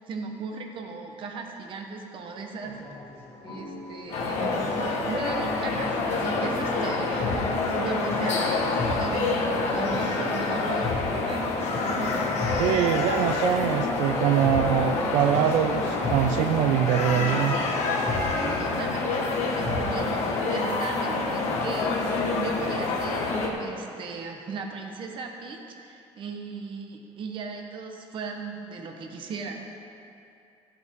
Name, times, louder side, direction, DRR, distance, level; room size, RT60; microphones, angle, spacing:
voice 1, 0.1-2.8 3.4-11.4 18.3-29.6, right 4 dB, 45° right, 3 dB, 1.1 m, -37 dB
sound 1, 2.6-20.3, left 2 dB, 25° left, 1.9 m, -36 dB
sound 2, 4.1-23.5, left 3 dB, 70° left, 1.4 m, -27 dB
voice 2, 12.6-17.5, right 10 dB, 85° right, 6 dB, 0.4 m, -24 dB
14.0 x 8.0 x 3.7 m, 2.6 s
cardioid pair, 165°, 12 cm